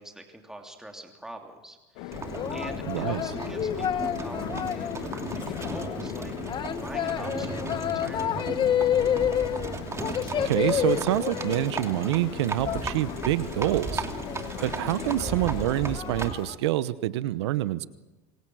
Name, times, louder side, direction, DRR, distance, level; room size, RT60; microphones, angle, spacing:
voice 1, 0.0-8.8 14.5-14.7, right 1 dB, 5° right, 3 dB, 3.1 m, -44 dB
sound 1, 2.0-16.0, left 13 dB, 70° left, 1.9 m, -39 dB
Livestock farm animals working animals, 2.1-16.5, right 4 dB, 20° right, 2.7 m, -36 dB
sound 2, 2.3-16.6, left 9 dB, 35° left, 1.1 m, -31 dB
voice 2, 2.9-3.2 10.4-14.0 14.6-17.8, right 15 dB, 90° right, 16 dB, 1.0 m, -27 dB
28.0 x 24.0 x 6.3 m, 1.1 s
supercardioid pair, 110°, 14 cm